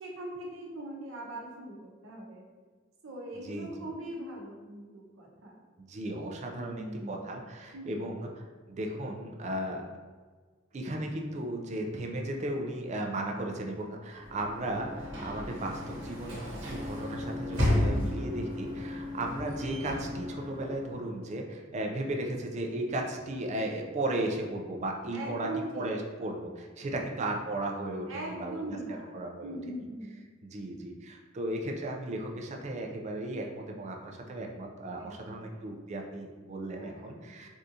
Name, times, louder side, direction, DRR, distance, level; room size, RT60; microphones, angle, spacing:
voice 1, 0.0-2.5 3.0-5.5 6.5-7.2 7.7-8.2 17.9-18.4 25.1-25.9 26.9-27.1 28.1-30.3 35.0-35.7 36.8-37.3, right 1 dB, 90° right, -2 dB, 0.7 m, -41 dB
voice 2, 5.8-9.9 10.7-28.8 29.1-29.6 30.5-37.5, right 1 dB, 35° right, 2 dB, 0.4 m, -35 dB
Sliding door / Slam, 14.2-21.2, left 1 dB, 70° right, 1.0 m, -33 dB
3.5 x 2.7 x 2.5 m, 1.5 s
head